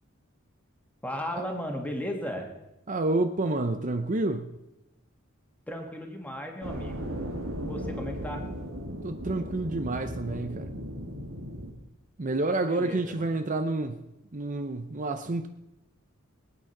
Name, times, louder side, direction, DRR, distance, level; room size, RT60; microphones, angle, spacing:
voice 1, 1.0-2.5 5.7-7.1 7.6-8.4 12.6-13.3, equal, 10° left, 2 dB, 2.4 m, -35 dB
voice 2, 2.9-4.6 9.0-10.7 12.2-14.1 14.3-15.5, right 2 dB, 40° right, 8 dB, 0.7 m, -29 dB
sound 1, 6.6-11.7, equal, 85° right, 2.3 m, -36 dB
21.5 x 9.2 x 6.0 m, 0.93 s
head